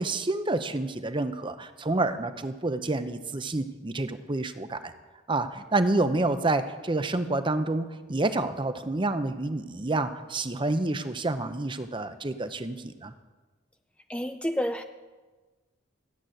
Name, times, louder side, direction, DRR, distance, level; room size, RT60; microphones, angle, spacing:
voice 1, 0.0-4.9 5.3-13.1, right 2 dB, 25° right, 10 dB, 0.7 m, -28 dB
voice 2, 14.1-14.8, equal, 5° left, 7 dB, 0.4 m, -29 dB
14.0 x 8.1 x 9.0 m, 1.3 s
head